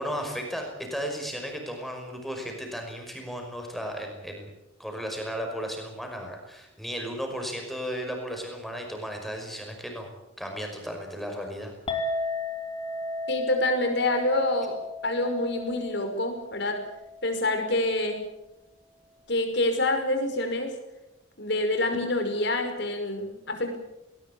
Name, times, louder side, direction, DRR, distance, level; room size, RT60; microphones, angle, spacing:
voice 1, 0.0-4.5 4.8-10.1 10.4-11.7, equal, ahead, 3 dB, 5.5 m, -35 dB
Chink clink, 11.9-18.2, left 2 dB, 30° left, 3.2 m, -35 dB
voice 2, 13.3-14.7 15.0-16.8 17.2-18.2 19.3-20.7 21.4-23.8, left 2 dB, 60° left, 6 dB, 5.4 m, -26 dB
20.0 x 19.5 x 8.7 m, 0.91 s
head